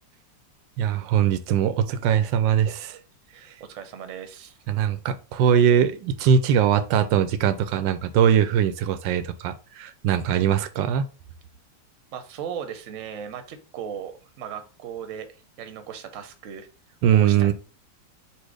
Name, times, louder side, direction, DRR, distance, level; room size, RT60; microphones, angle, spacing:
voice 1, 0.8-3.0 4.7-11.1 17.0-17.5, right 8 dB, 90° right, 11 dB, 1.3 m, -21 dB
voice 2, 3.3-4.6 12.1-16.7 17.1-17.5, right 8 dB, 55° right, 7 dB, 0.9 m, -37 dB
4.4 x 2.5 x 4.7 m, 0.35 s
omnidirectional pair, 2.0 m